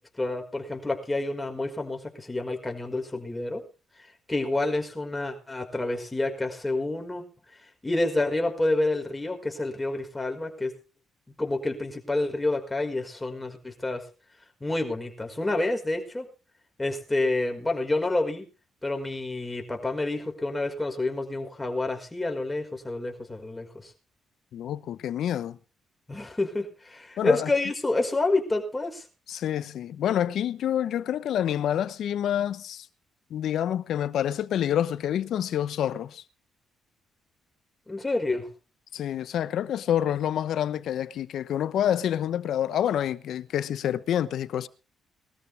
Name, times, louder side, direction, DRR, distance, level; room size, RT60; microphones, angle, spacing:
voice 1, 0.2-3.6 4.3-7.2 7.8-10.7 11.4-14.0 14.6-16.3 16.8-18.5 18.8-23.9 26.1-29.0 37.9-38.5, left 2 dB, 15° left, 5.2 m, -28 dB
voice 2, 24.5-25.6 27.2-27.5 29.3-32.9 33.3-36.2 38.9-44.7, left 10 dB, 70° left, 1.0 m, -27 dB
21.0 x 13.5 x 3.5 m
cardioid pair, 80°, 0 cm